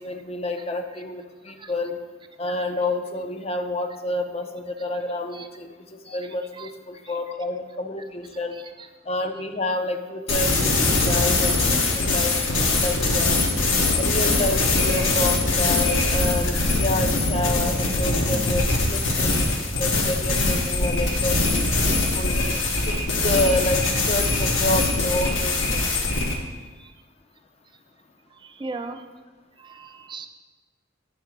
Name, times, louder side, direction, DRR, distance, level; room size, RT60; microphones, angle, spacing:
voice 1, 0.0-2.0 2.4-8.5 9.1-13.4 14.0-19.5 19.8-22.3 22.9-25.9, left 2 dB, 30° left, 6 dB, 0.5 m, -29 dB
sound 1, 10.3-26.4, left 2 dB, 80° left, 1.1 m, -22 dB
voice 2, 28.6-29.0 29.7-30.3, right 3 dB, 25° right, 7 dB, 0.4 m, -36 dB
9.2 x 3.7 x 5.9 m, 1.3 s
head